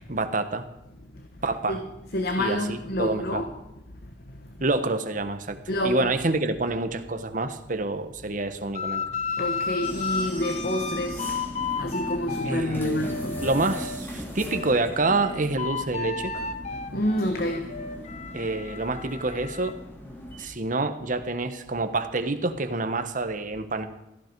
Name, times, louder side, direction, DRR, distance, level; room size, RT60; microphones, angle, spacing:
voice 1, 0.1-0.7 1.4-1.8 2.4-3.5 4.6-5.6 5.8-9.0 12.4-16.3 18.3-19.8 20.4-23.9, right 2 dB, 50° right, 9 dB, 1.2 m, -27 dB
voice 2, 2.1-3.5 5.7-6.1 9.4-11.4 11.7-13.4 14.3-14.4 16.9-18.3, left 1 dB, 60° left, 5 dB, 1.4 m, -28 dB
sound 1, 8.7-14.0 14.4-19.7, left 5 dB, 40° left, 0.9 m, -33 dB
sound 2, 9.8-20.5, equal, 15° left, 2.7 m, -39 dB
17.0 x 14.5 x 4.7 m, 0.91 s
head